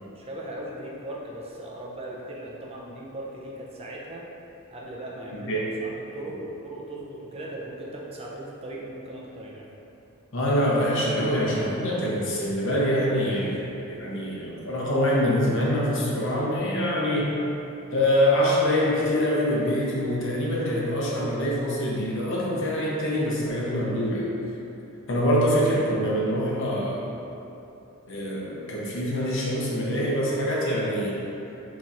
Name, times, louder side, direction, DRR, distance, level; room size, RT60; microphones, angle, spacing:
voice 1, 0.0-4.3 4.7-9.6, right 1 dB, 30° right, -4 dB, 0.5 m, -38 dB
voice 2, 10.3-17.4 17.9-24.3 25.1-27.1 28.1-31.2, equal, 60° left, -4 dB, 0.9 m, -25 dB
7.0 x 3.0 x 2.5 m, 2.8 s
head